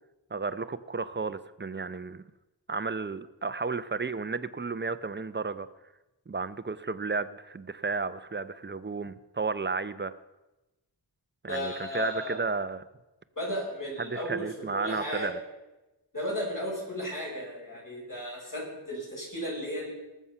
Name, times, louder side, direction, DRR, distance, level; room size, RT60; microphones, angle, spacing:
voice 1, 0.3-2.3 2.7-5.7 6.3-10.1 11.4-12.8 14.0-15.4, right 4 dB, 25° right, 14 dB, 0.6 m, -33 dB
voice 2, 11.5-12.4 13.3-14.5 14.7-15.3 16.1-19.9, equal, 45° left, -4 dB, 6.0 m, -34 dB
18.5 x 7.2 x 5.6 m, 1.0 s
wide cardioid pair, 70°, 44 cm